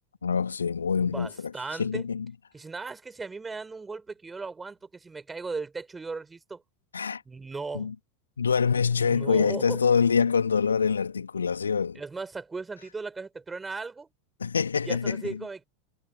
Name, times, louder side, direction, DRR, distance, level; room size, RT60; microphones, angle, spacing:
voice 1, 0.2-1.5 1.8-2.3 6.9-7.2 7.7-7.9 8.4-12.0 14.4-15.4, left 6 dB, 75° left, 2.3 m, -25 dB
voice 2, 1.0-2.1 2.5-6.6 7.3-7.9 9.0-9.8 11.9-14.1 14.8-15.6, right 4 dB, 15° right, 6.1 m, -37 dB
figure-of-eight pair, 80°, 0 cm